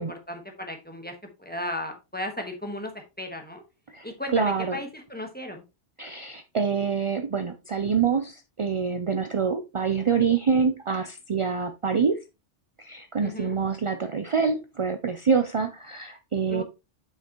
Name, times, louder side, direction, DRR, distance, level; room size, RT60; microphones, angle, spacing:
voice 1, 0.0-3.6 4.0-5.6 13.2-13.5 16.5-16.6, left 1 dB, 10° left, 1.3 m, -35 dB
voice 2, 4.3-4.8 6.0-12.2 12.8-16.6, right 5 dB, 50° right, 0.4 m, -26 dB
7.4 x 5.8 x 3.0 m
omnidirectional pair, 1.3 m